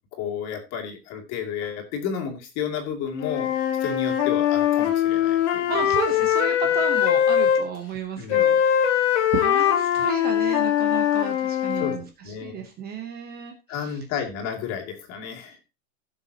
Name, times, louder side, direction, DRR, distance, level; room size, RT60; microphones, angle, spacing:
voice 1, 0.1-3.5 3.8-5.9 8.1-8.6 11.8-11.9 12.2-12.7 13.7-15.7, left 7 dB, 35° left, 2 dB, 2.7 m, -32 dB
Wind instrument woodwind instrument, 3.2-7.6 8.3-12.0, left 10 dB, 50° left, 2.1 m, -21 dB
voice 2, 5.7-14.0, right 6 dB, 20° right, 5 dB, 1.0 m, -33 dB
16.5 x 7.0 x 2.9 m, 0.28 s
supercardioid pair, 150°, 46 cm